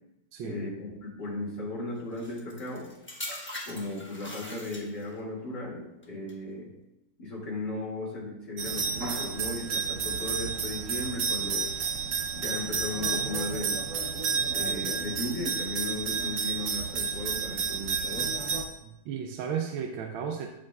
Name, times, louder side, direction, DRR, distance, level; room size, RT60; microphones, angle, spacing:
voice 1, 0.4-2.9 3.7-6.7 7.2-11.7 12.3-13.8 14.5-18.3, left 2 dB, 60° left, -4 dB, 2.7 m, -36 dB
sound 1, 2.2-5.2 6.0-6.3, left 1 dB, 10° left, 0.7 m, -41 dB
sound 2, 8.6-18.6, right 5 dB, 55° right, 0.9 m, -31 dB
voice 2, 18.8-20.5, right 7 dB, 80° right, 3 dB, 1.4 m, -34 dB
14.5 x 5.0 x 2.4 m, 0.91 s
omnidirectional pair, 2.2 m